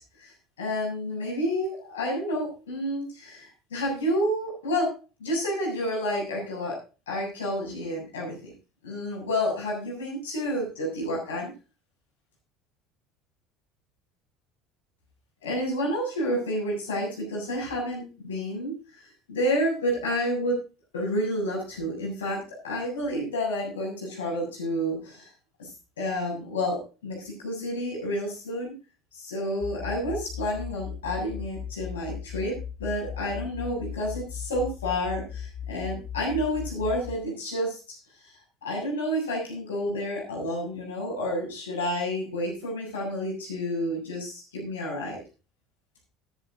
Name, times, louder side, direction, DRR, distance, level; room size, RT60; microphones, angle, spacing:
voice 1, 0.2-4.9 5.2-6.8 7.1-8.5 8.8-11.5 15.4-20.6 20.9-25.3 25.6-25.7 26.0-28.7 29.1-45.2, equal, 75° left, -2 dB, 7.2 m, -30 dB
sound 1, 29.6-37.2, left 8 dB, 40° left, 5.0 m, -37 dB
14.0 x 11.0 x 3.9 m, 0.33 s
figure-of-eight pair, 65°, 0 cm